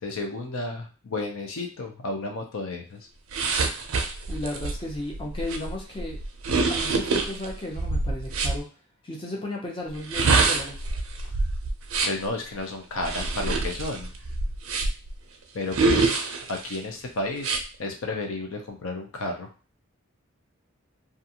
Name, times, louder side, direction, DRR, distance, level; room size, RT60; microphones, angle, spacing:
voice 1, 0.0-3.0 12.0-14.1 15.5-19.5, left 2 dB, 70° left, 2 dB, 0.5 m, -32 dB
sound 1, 3.3-8.6 9.9-12.3 13.0-15.1 15.7-16.8 17.4-17.6, right 3 dB, 75° right, 0.4 m, -26 dB
voice 2, 4.3-6.2 6.6-8.7 9.0-10.8, left 1 dB, 25° left, -1 dB, 0.6 m, -34 dB
2.4 x 2.4 x 2.8 m, 0.35 s
head